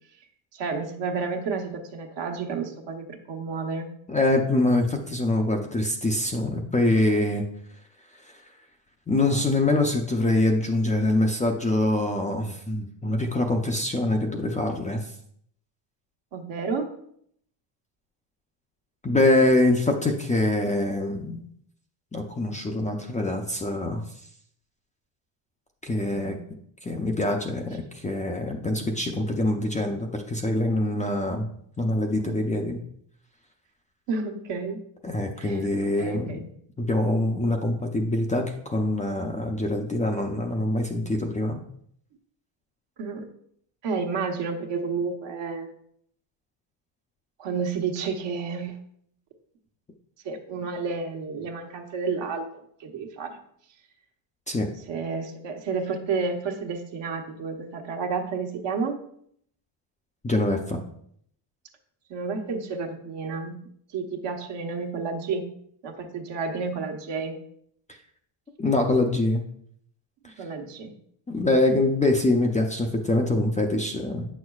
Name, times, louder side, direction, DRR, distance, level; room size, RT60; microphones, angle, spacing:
voice 1, 0.5-3.9 16.3-16.9 26.1-26.4 34.1-34.8 35.4-35.7 35.9-36.4 39.0-39.1 43.0-43.3 43.8-45.7 47.4-48.8 50.2-53.4 54.9-59.0 62.1-63.6 63.9-65.5 65.8-67.4 70.4-71.0, right 4 dB, 60° right, 3 dB, 1.2 m, -31 dB
voice 2, 4.1-7.4 9.1-15.0 19.0-21.4 22.1-24.0 25.8-26.4 26.8-31.5 31.8-32.8 35.0-36.5 36.8-41.6 54.5-54.7 60.2-60.8 68.6-69.4 71.3-74.3, left 2 dB, 15° left, 2 dB, 0.5 m, -24 dB
8.6 x 6.4 x 2.4 m, 0.67 s
cardioid pair, 125°, 49 cm